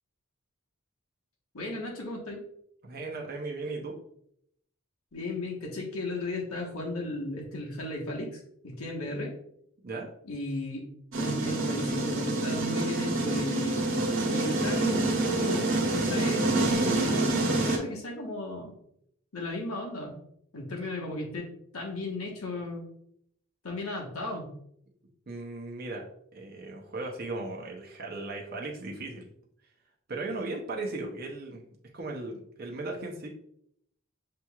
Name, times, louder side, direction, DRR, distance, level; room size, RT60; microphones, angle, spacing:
voice 1, 1.5-2.4 5.1-9.4 10.2-10.8 11.2-13.9 14.3-18.7 19.3-20.2 20.5-22.9 23.6-24.5, left 2 dB, 90° left, 0 dB, 1.2 m, -35 dB
voice 2, 2.8-4.0 9.8-10.1 25.3-29.3 30.1-31.6 31.9-33.3, right 2 dB, 45° right, 0 dB, 0.6 m, -37 dB
sound 1, 11.1-17.8, right 2 dB, 65° right, 0.9 m, -27 dB
6.7 x 3.0 x 2.3 m, 0.71 s
head